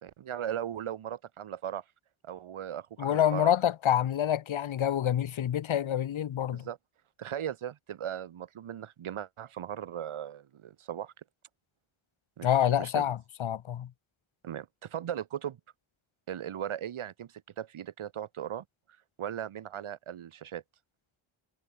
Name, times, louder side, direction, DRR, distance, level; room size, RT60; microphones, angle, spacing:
voice 1, 0.0-1.8 2.2-3.5 6.5-6.8 7.2-11.1 12.4-13.1 14.4-15.6 16.3-17.3 17.6-18.6 19.2-20.6, right 10 dB, 85° right, 4.6 m, -38 dB
voice 2, 3.0-6.7 12.4-13.9, left 10 dB, 75° left, 2.4 m, -27 dB
wide cardioid pair, 160°, 48 cm